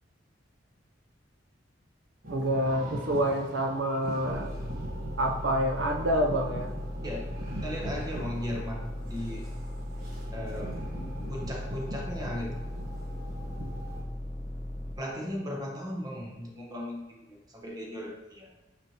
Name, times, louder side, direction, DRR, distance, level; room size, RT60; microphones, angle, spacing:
sound 1, 2.2-14.0, right 1 dB, 50° right, 1.4 m, -42 dB
voice 1, 2.3-4.5 5.2-6.7, right 1 dB, 65° right, 2 dB, 0.6 m, -27 dB
sound 2, 4.3-15.0, left 1 dB, ahead, 0.7 m, -37 dB
voice 2, 7.6-9.5 10.3-10.8 11.3-12.6 15.0-18.5, left 1 dB, 20° right, -1 dB, 1.1 m, -37 dB
8.7 x 4.4 x 2.9 m, 1.0 s
head